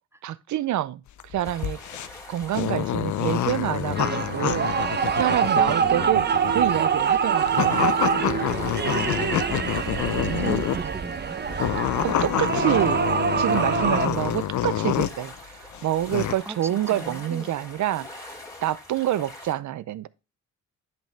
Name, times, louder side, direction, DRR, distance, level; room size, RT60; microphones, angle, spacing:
voice 1, 0.2-1.8 2.3-7.9 10.2-10.9 12.0-13.0 13.4-20.1, right 12 dB, 60° right, 0.6 m, -28 dB
sound 1, 1.1-10.9 11.5-15.3 15.7-16.3, left 12 dB, 60° left, 0.6 m, -27 dB
sound 2, 1.4-19.5, left 2 dB, 10° left, 2.9 m, -46 dB
sound 3, 3.9-14.1, right 7 dB, 30° right, 0.8 m, -25 dB
voice 2, 5.5-6.2 8.9-11.5 16.5-17.5, right 2 dB, 10° right, 0.3 m, -38 dB
10.5 x 5.9 x 3.3 m
cardioid pair, 110°, 32 cm